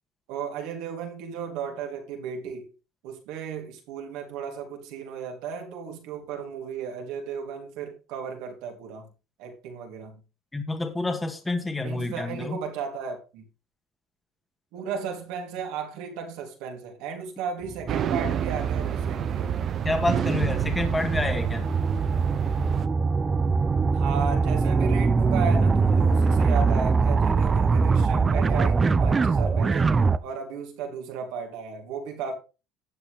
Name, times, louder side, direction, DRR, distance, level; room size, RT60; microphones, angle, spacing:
voice 1, 0.3-2.7 3.0-9.1 9.4-10.2 11.8-13.4 14.7-19.6 23.9-32.3, right 6 dB, 80° right, 3.5 m, -35 dB
voice 2, 10.5-12.6 19.8-21.7, left 2 dB, 15° left, 1.9 m, -28 dB
sound 1, 17.7-30.2, right 4 dB, 25° right, 0.6 m, -23 dB
sound 2, 17.9-22.9, right 8 dB, 50° right, 1.0 m, -28 dB
12.0 x 8.1 x 3.6 m
supercardioid pair, 100°, 0 cm